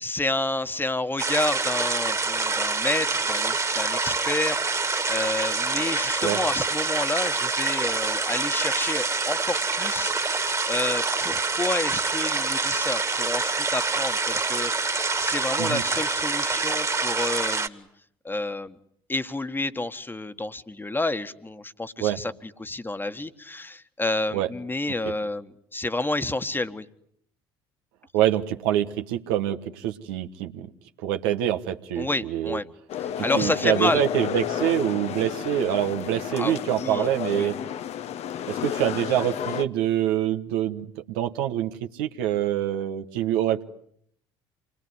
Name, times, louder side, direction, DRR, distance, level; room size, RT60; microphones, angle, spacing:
voice 1, 0.0-10.1 10.7-17.9 18.2-18.8 19.1-22.3 22.6-26.8 32.0-32.7 33.2-34.0 36.3-37.5, left 2 dB, 15° left, 11 dB, 1.6 m, -29 dB
sound 1, 1.2-17.7, right 3 dB, 25° right, 2.2 m, -26 dB
voice 2, 28.1-30.7 31.0-32.6 33.2-37.6 38.5-43.6, right 12 dB, 75° right, 6 dB, 1.3 m, -25 dB
sound 2, 32.9-39.7, left 9 dB, 55° left, 1.1 m, -31 dB
27.5 x 21.0 x 9.7 m, 0.68 s
hypercardioid pair, 55°, 13 cm